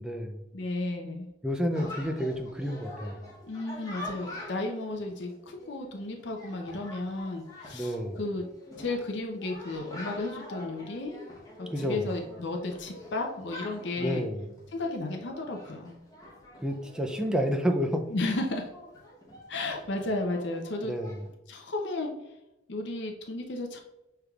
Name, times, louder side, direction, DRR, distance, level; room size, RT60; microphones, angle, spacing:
voice 1, 0.0-0.4 1.4-3.2 7.7-8.2 11.7-12.1 14.0-14.4 16.6-18.1 20.8-21.2, equal, 5° right, 3 dB, 0.3 m, -30 dB
voice 2, 0.5-1.3 1.7-1.9 3.5-8.4 8.8-11.2 11.6-14.3 14.7-15.9 18.1-18.7 19.5-20.9 21.5-22.1 22.7-23.8, left 2 dB, 60° left, 3 dB, 0.6 m, -33 dB
Chatter, 1.7-21.3, left 1 dB, 15° left, 0.9 m, -46 dB
5.9 x 3.4 x 2.3 m, 0.93 s
head